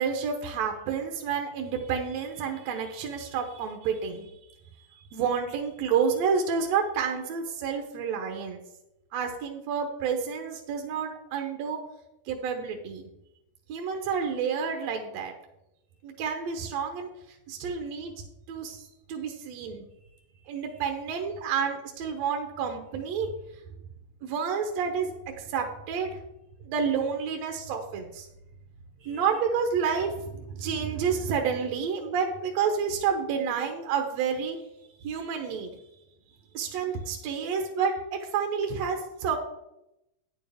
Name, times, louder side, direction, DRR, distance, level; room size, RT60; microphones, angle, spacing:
voice 1, 0.0-4.3 5.1-8.6 9.1-11.8 12.3-13.1 13.7-15.3 16.0-17.1 17.5-18.1 18.5-19.9 20.5-23.3 24.2-25.1 25.4-26.1 26.6-28.3 29.0-34.6 35.0-35.8 36.5-39.4, right 6 dB, 70° right, 3 dB, 1.7 m, -29 dB
9.5 x 8.8 x 3.5 m, 0.87 s
omnidirectional pair, 3.8 m